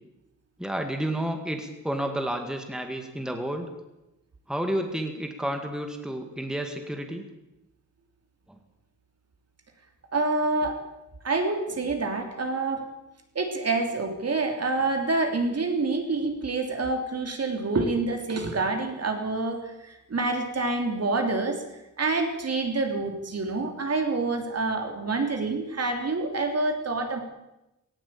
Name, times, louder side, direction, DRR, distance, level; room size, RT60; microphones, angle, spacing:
voice 1, 0.6-3.7 4.5-7.3, right 1 dB, ahead, 5 dB, 2.1 m, -31 dB
voice 2, 10.1-10.8 11.2-12.8 13.3-21.6 22.0-27.2, right 3 dB, 55° right, 4 dB, 3.3 m, -27 dB
19.5 x 18.5 x 8.7 m, 0.92 s
wide cardioid pair, 180°, 30 cm